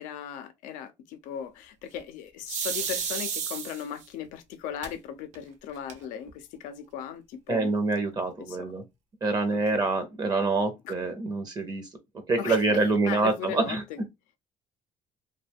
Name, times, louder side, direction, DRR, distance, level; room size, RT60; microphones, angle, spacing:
voice 1, 0.0-7.7 8.4-8.7 9.5-9.9 10.8-10.9 12.4-12.8 13.0-14.0, left 9 dB, 90° left, 0.5 m, -37 dB
sound 1, 2.5-4.0 4.8-4.9 5.3-5.4 5.7-6.3, right 7 dB, 65° right, 0.7 m, -32 dB
voice 2, 7.5-8.8 9.2-11.9 12.3-13.8, right 3 dB, 30° right, 0.6 m, -26 dB
2.3 x 2.2 x 3.3 m
cardioid pair, 105°, 13 cm